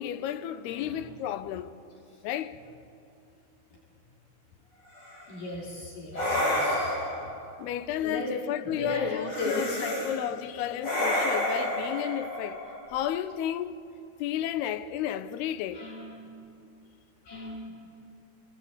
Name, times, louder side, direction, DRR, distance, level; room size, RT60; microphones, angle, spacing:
voice 1, 0.0-1.8 2.2-2.6 7.6-12.6 12.9-13.8 14.2-15.9, left 11 dB, 90° left, 2.8 m, -32 dB
voice 2, 0.7-1.0 5.3-7.1 8.0-8.3 8.8-10.1 10.6-10.7 15.7-16.4 17.3-18.0, left 1 dB, 60° left, 4.7 m, -36 dB
sound 1, 4.9-5.3 6.1-7.4 9.3-10.2 10.8-13.0, left 1 dB, 40° left, 7.5 m, -29 dB
30.0 x 18.5 x 8.6 m
omnidirectional pair, 4.5 m